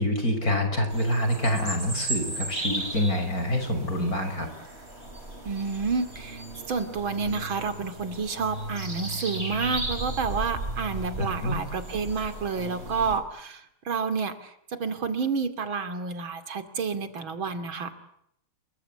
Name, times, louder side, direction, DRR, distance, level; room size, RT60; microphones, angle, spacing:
voice 1, 0.0-4.5 11.4-11.6, left 1 dB, 45° left, 7 dB, 6.2 m, -26 dB
sound 1, 0.9-13.2, right 2 dB, 30° right, 5.0 m, -36 dB
voice 2, 5.4-6.4 6.7-17.9, right 5 dB, 75° right, 10 dB, 3.3 m, -30 dB
28.0 x 23.5 x 8.5 m, 0.74 s
omnidirectional pair, 2.2 m